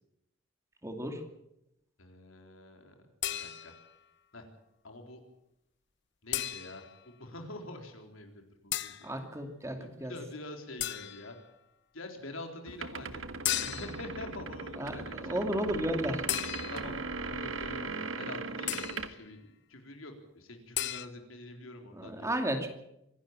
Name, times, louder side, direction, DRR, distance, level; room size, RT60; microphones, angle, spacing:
voice 1, 0.8-1.2 9.0-10.1 14.8-16.2 21.9-22.7, right 1 dB, 15° right, 5 dB, 2.6 m, -33 dB
voice 2, 2.0-3.0 3.3-3.8 4.3-4.5 4.8-5.2 6.2-9.1 9.8-11.4 11.9-13.2 13.5-15.4 16.7-16.9 17.2-22.4, left 1 dB, 85° left, 4 dB, 4.0 m, -46 dB
sound 1, 3.2-3.9 6.3-7.0 8.7-9.1 10.8-11.4 13.4-14.1 16.3-17.0 18.7-19.1 20.7-21.1, left 12 dB, 60° left, 0.9 m, -35 dB
sound 2, 12.7-19.1, right 3 dB, 75° right, 1.5 m, -38 dB
25.0 x 11.5 x 8.9 m, 0.83 s
head